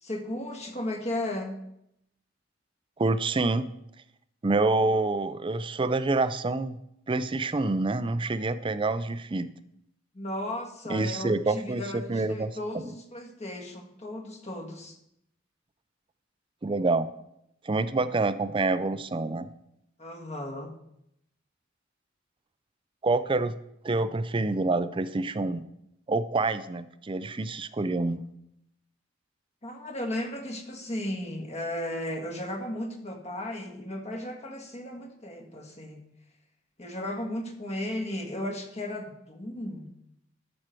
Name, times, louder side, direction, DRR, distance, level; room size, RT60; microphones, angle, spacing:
voice 1, 0.0-1.6 10.1-15.0 20.0-20.7 29.6-36.0 36.8-39.9, left 1 dB, 35° left, 4 dB, 1.6 m, -35 dB
voice 2, 3.0-3.7 4.4-6.8 7.1-9.5 10.9-11.8 12.1-12.5 12.8-12.9 16.6-17.1 17.6-19.5 23.0-23.5 23.8-25.6 26.1-28.2, right 3 dB, 25° right, 13 dB, 0.5 m, -27 dB
12.0 x 6.4 x 4.5 m, 0.78 s
head